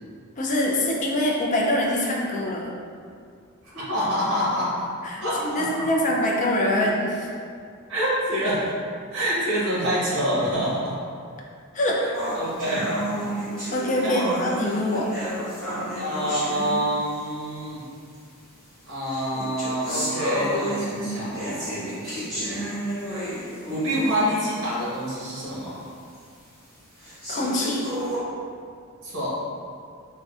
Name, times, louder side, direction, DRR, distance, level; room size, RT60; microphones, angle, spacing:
voice 1, 0.4-2.7 5.0-7.3 11.7-12.1 13.7-15.1 27.3-27.9, left 1 dB, 35° left, -2 dB, 0.4 m, -24 dB
voice 2, 3.7-4.9 5.2-5.9 7.9-8.7 9.1-10.9 12.3-13.0 14.0-14.4 15.9-17.9 18.9-22.7 23.0-23.2 23.7-25.8 29.0-29.4, equal, 60° right, -8 dB, 1.0 m, -27 dB
sound 1, 12.1-17.3 18.1-18.2 19.0-24.3 24.7-24.8 25.4-25.5 26.1-26.2 27.0-28.2, equal, 5° left, 1.5 m, -31 dB
3.6 x 2.2 x 2.3 m, 2.2 s
head